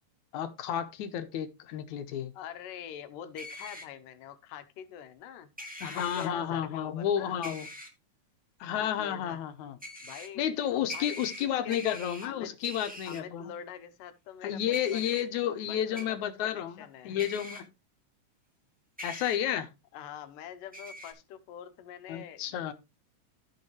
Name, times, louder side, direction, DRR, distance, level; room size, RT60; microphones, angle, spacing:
voice 1, 0.3-2.3 5.8-7.7 8.6-9.8 10.4-13.5 14.4-17.7 19.0-19.7 22.1-22.7, left 10 dB, 75° left, 2.2 m, -31 dB
voice 2, 2.3-5.5 5.8-7.4 8.7-9.4 10.0-10.4 10.9-12.5 13.1-15.1 15.6-17.2 19.9-22.7, left 9 dB, 90° left, 2.6 m, -45 dB
sound 1, 3.4-3.9 5.6-6.3 7.4-7.9 9.8-10.3 10.9-12.3 12.6-13.2 14.7-15.2 15.9-16.0 17.2-17.6 19.0-19.4 20.7-21.1, equal, 5° right, 1.2 m, -42 dB
15.0 x 5.5 x 3.2 m
omnidirectional pair, 3.7 m